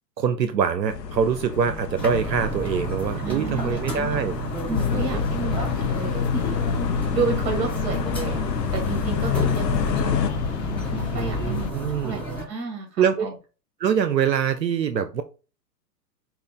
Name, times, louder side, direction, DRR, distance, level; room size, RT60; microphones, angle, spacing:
voice 1, 0.2-4.4 4.9-5.2 11.1-12.2 13.0-13.3 13.8-15.2, right 7 dB, 80° right, 10 dB, 0.6 m, -24 dB
sound 1, 0.9-10.3, left 6 dB, 75° left, 0.8 m, -30 dB
sound 2, 2.0-12.4, right 3 dB, 5° left, 1.3 m, -32 dB
voice 2, 3.2-4.2 4.7-6.7 7.1-8.4 8.7-10.1 10.9-13.3, right 4 dB, 30° right, 2 dB, 2.0 m, -31 dB
sound 3, 4.7-11.7, left 7 dB, 45° left, 0.5 m, -28 dB
5.6 x 2.4 x 3.7 m, 0.33 s
figure-of-eight pair, 105°, 50 cm